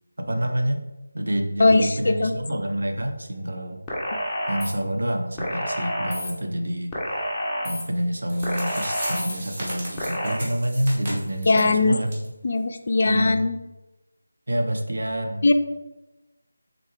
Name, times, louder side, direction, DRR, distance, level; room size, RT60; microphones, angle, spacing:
voice 1, 0.2-0.8 1.1-3.8 4.5-6.9 7.6-12.2 13.0-13.4 14.5-15.5, right 1 dB, 80° right, 4 dB, 0.6 m, -27 dB
voice 2, 1.6-2.4 11.5-12.0 12.4-13.6 15.4-15.5, left 3 dB, 50° left, 8 dB, 0.3 m, -20 dB
sound 1, 3.9-4.7 5.4-6.3 6.9-7.8 8.4-9.3 10.0-10.4, equal, 5° left, 0.6 m, -29 dB
sound 2, 8.0-8.1 8.3-11.7 12.1-12.3 12.6-12.7 13.1-13.2, equal, 30° right, 1.3 m, -35 dB
3.6 x 3.5 x 3.2 m, 1.0 s
figure-of-eight pair, 170°, 0 cm